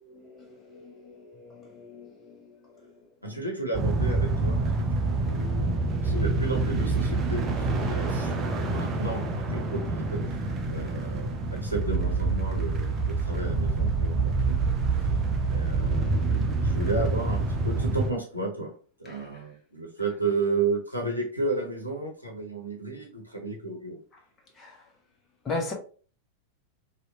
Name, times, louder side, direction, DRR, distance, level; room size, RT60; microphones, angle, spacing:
voice 1, 0.0-2.5 3.3-3.4 24.6-24.8 25.4-25.7, left 3 dB, 20° left, 0.7 m, -37 dB
voice 2, 3.2-8.4 8.7-10.4 10.7-14.6 15.5-24.0, right 3 dB, 90° left, 0.6 m, -33 dB
sound 1, 3.7-18.1, right 3 dB, 25° right, 0.5 m, -27 dB
2.7 x 2.1 x 2.7 m
figure-of-eight pair, 90°, 0 cm